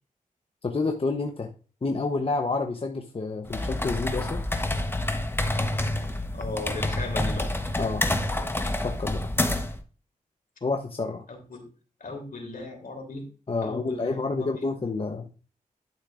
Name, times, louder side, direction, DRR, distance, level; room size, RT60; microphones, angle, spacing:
voice 1, 0.6-1.5 1.8-4.4 7.8-8.0 8.8-9.2 10.6-11.2 13.5-15.3, left 3 dB, 40° left, 4 dB, 0.9 m, -29 dB
sound 1, 3.4-9.8, left 1 dB, 15° left, 1.1 m, -28 dB
voice 2, 6.3-7.5 11.3-11.6 12.0-13.2 13.6-14.6, left 2 dB, 70° left, 1 dB, 3.2 m, -36 dB
11.5 x 6.4 x 2.5 m, 0.37 s
cardioid pair, 60°, 14 cm